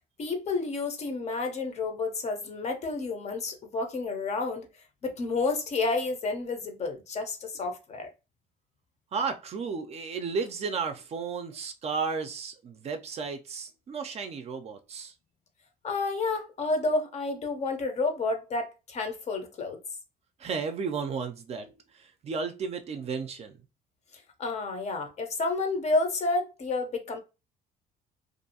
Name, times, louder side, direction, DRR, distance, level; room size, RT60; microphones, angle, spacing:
voice 1, 0.2-4.7 5.0-8.1 15.8-19.8 24.1-27.2, left 3 dB, 40° left, 0.6 m, -30 dB
voice 2, 9.1-15.1 20.4-23.6, right 5 dB, 40° right, 0.4 m, -33 dB
2.5 x 2.2 x 2.7 m
cardioid pair, 110°, 17 cm